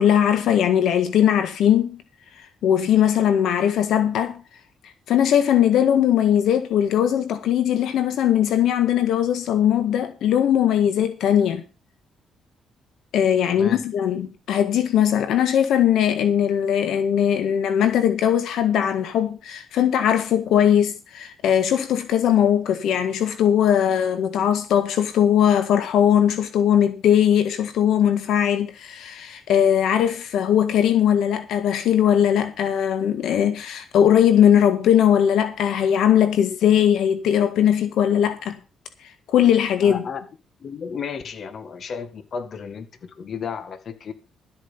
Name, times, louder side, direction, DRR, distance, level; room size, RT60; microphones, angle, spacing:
voice 1, 0.0-2.0 2.6-4.4 5.1-11.6 13.1-38.6 39.3-40.0, left 9 dB, 80° left, 1.8 m, -19 dB
voice 2, 39.8-40.2 40.6-44.1, left 6 dB, 55° left, 1.9 m, -33 dB
13.0 x 8.6 x 5.7 m
cardioid pair, 90°, 0 cm